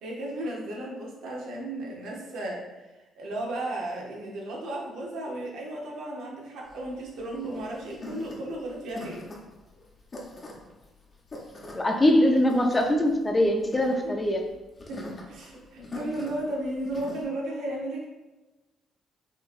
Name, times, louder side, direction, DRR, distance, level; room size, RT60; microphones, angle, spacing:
voice 1, 0.0-2.9 3.2-9.3 14.0-14.1 14.9-18.1, right 1 dB, 85° right, -2 dB, 0.9 m, -34 dB
sound 1, 6.7-17.3, left 2 dB, 35° left, 0.9 m, -43 dB
voice 2, 11.7-14.5, left 1 dB, 20° left, 3 dB, 0.5 m, -22 dB
4.7 x 2.8 x 2.5 m, 1.1 s
cardioid pair, 90°, 0 cm